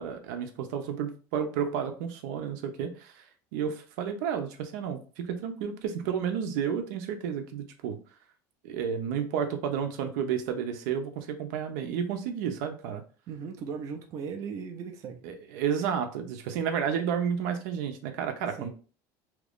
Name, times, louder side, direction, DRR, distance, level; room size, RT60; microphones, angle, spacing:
voice 1, 0.0-3.2 3.5-8.0 8.6-13.0 15.2-18.7, right 7 dB, 85° right, 6 dB, 0.6 m, -31 dB
voice 2, 13.3-15.2 18.6-18.7, right 6 dB, 35° right, 4 dB, 0.4 m, -37 dB
2.9 x 2.5 x 3.5 m, 0.37 s
cardioid pair, 170°, 9 cm